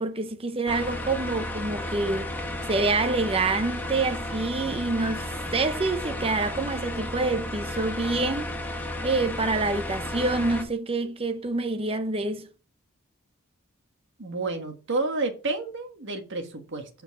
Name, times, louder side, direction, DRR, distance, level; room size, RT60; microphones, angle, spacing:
voice 1, 0.0-2.3 2.7-8.5 9.0-12.5, right 3 dB, 25° right, 0.8 m, -27 dB
sound 1, 0.7-10.6, left 1 dB, 10° left, 1.4 m, -33 dB
voice 2, 14.2-16.9, right 3 dB, 60° right, 1.6 m, -30 dB
7.1 x 5.7 x 5.8 m
head